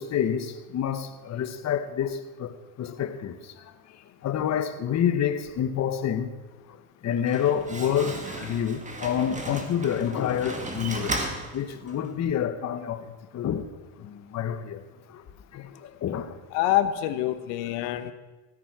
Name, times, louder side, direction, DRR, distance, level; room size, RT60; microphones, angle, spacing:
voice 1, 0.0-3.5 4.2-6.3 7.0-11.3 11.5-13.7 14.0-14.8 15.1-15.2 15.5-16.4 17.8-17.9, left 9 dB, 40° left, 1.1 m, -28 dB
Slam, 7.0-12.1, right 2 dB, 15° right, 1.8 m, -35 dB
voice 2, 16.5-18.1, left 13 dB, 85° left, 1.1 m, -26 dB
16.0 x 9.3 x 6.0 m
cardioid pair, 130°, 43 cm